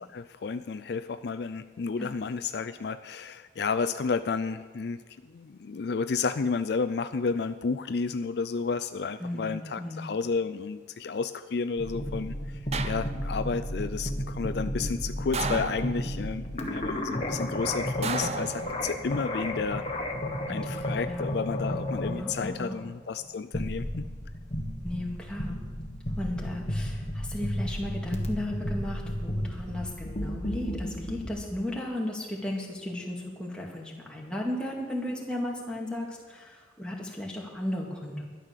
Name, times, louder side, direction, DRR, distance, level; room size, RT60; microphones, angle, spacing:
voice 1, 0.0-19.9 20.5-24.1, left 5 dB, 60° left, 11 dB, 0.4 m, -31 dB
voice 2, 9.2-10.1 20.5-21.2 22.2-22.8 24.8-25.6 26.2-38.2, left 1 dB, 5° left, -2 dB, 2.0 m, -35 dB
sound 1, 11.8-31.3, equal, 35° left, 1.4 m, -33 dB
sound 2, 12.7-13.5 15.3-16.3 18.0-19.2 20.6-21.1, right 4 dB, 35° right, 0.6 m, -34 dB
12.5 x 9.8 x 6.7 m, 1.5 s
head